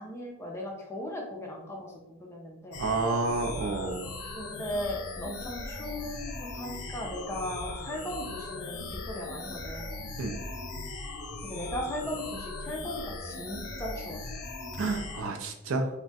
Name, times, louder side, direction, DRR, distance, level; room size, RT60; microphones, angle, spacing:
voice 1, 0.0-2.8 4.2-10.0 11.4-14.4, left 1 dB, 10° left, -1 dB, 0.4 m, -37 dB
sound 1, 2.7-15.2, left 2 dB, 75° left, 0.6 m, -39 dB
voice 2, 2.8-4.1 10.2-10.4 14.8-15.9, right 3 dB, 60° right, 5 dB, 0.4 m, -30 dB
2.3 x 2.2 x 3.9 m, 0.88 s
head